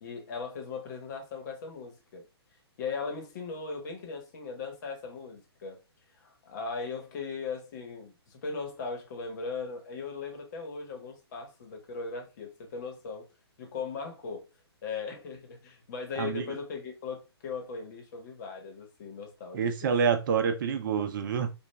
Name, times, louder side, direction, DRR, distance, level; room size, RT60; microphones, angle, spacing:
voice 1, 0.0-2.2 2.8-5.8 6.1-13.3 13.6-14.5 14.8-19.9, left 5 dB, 45° left, 1.2 m, -38 dB
voice 2, 19.5-21.5, right 6 dB, 50° right, 0.6 m, -27 dB
5.0 x 2.5 x 2.3 m
hypercardioid pair, 135°, 14 cm